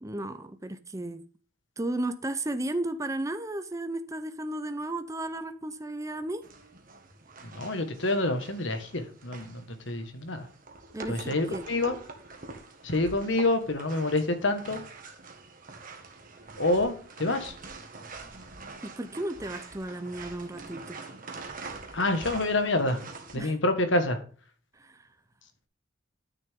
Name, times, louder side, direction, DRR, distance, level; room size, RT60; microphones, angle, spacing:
voice 1, 0.0-1.2 1.8-6.5 10.9-11.7 18.8-21.1 23.3-23.6 24.8-25.1, right 1 dB, 15° right, 0.6 m, -34 dB
sound 1, 6.4-23.4, right 3 dB, 40° right, 1.7 m, -45 dB
voice 2, 7.5-10.5 11.1-12.0 12.8-14.8 16.6-17.5 21.9-23.0 23.3-24.2, left 2 dB, 60° left, 1.6 m, -27 dB
12.5 x 6.6 x 3.7 m
head